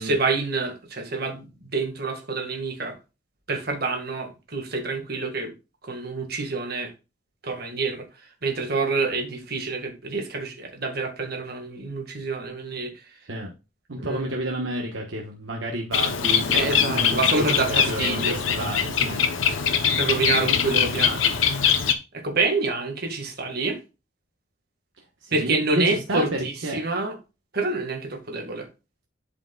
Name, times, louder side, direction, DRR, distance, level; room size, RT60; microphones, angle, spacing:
voice 1, 0.0-3.0 3.5-5.5 5.8-6.9 7.4-8.1 8.4-13.2 14.0-14.3 16.5-18.4 18.8-19.2 19.6-21.8 22.1-23.8 25.3-27.2 27.5-28.7, right 3 dB, 50° right, 1.8 m, -27 dB
voice 2, 13.9-17.2 17.7-19.2 25.2-26.2 26.6-26.8, right 1 dB, 70° right, 1.2 m, -30 dB
Bird, 15.9-21.9, left 7 dB, 80° left, 0.9 m, -22 dB
11.5 x 5.1 x 2.3 m
head